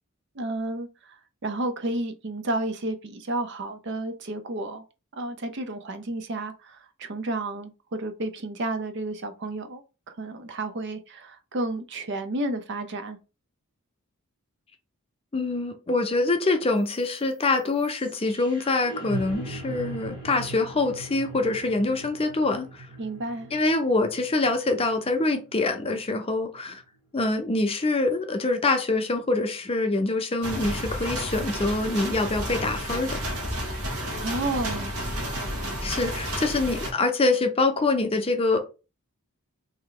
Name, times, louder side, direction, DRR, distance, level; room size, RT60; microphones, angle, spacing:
voice 1, 0.4-4.8 5.1-9.8 10.1-13.2 23.0-23.5 33.9-34.9, right 2 dB, 50° right, 0.6 m, -31 dB
voice 2, 15.3-22.9 23.5-26.8 27.1-33.2 35.8-38.6, left 2 dB, 25° left, 0.6 m, -25 dB
sound 1, 16.8-26.8, right 2 dB, 20° right, 1.2 m, -41 dB
sound 2, 30.4-36.9, equal, 85° right, 1.3 m, -31 dB
3.3 x 2.9 x 3.8 m
head